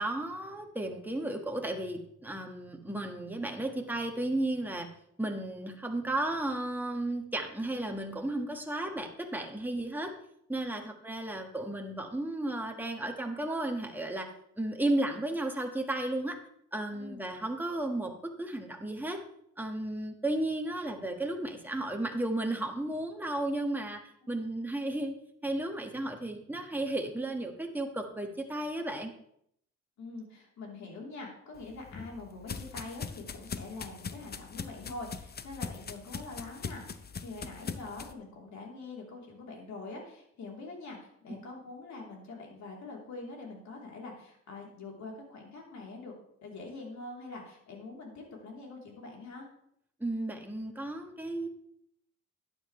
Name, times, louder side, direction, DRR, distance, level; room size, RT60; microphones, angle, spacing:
voice 1, 0.0-4.9 5.2-10.1 10.5-14.3 14.6-16.4 16.7-19.2 19.6-24.0 24.3-25.1 25.4-29.1 41.3-41.4 50.0-51.5, right 1 dB, 5° right, 3 dB, 1.6 m, -34 dB
voice 2, 24.2-24.5 30.0-46.1 46.4-49.5, left 3 dB, 65° left, -1 dB, 3.4 m, -44 dB
sound 1, 31.5-38.1, left 5 dB, 35° left, 0.8 m, -41 dB
11.5 x 9.7 x 3.2 m, 0.72 s
cardioid pair, 90°, 30 cm